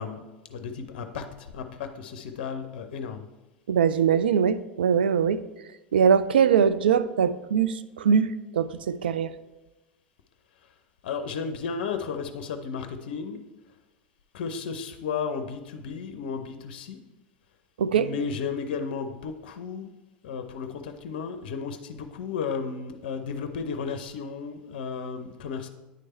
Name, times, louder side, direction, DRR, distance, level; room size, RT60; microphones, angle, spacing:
voice 1, 0.0-3.3 11.0-13.4 14.3-17.0 17.9-19.9 20.2-25.7, left 5 dB, 65° left, 7 dB, 0.5 m, -34 dB
voice 2, 3.7-5.4 5.9-9.3 17.8-18.1, right 7 dB, 80° right, 13 dB, 0.3 m, -22 dB
9.3 x 3.3 x 4.2 m, 1.1 s
hypercardioid pair, 85°, 5 cm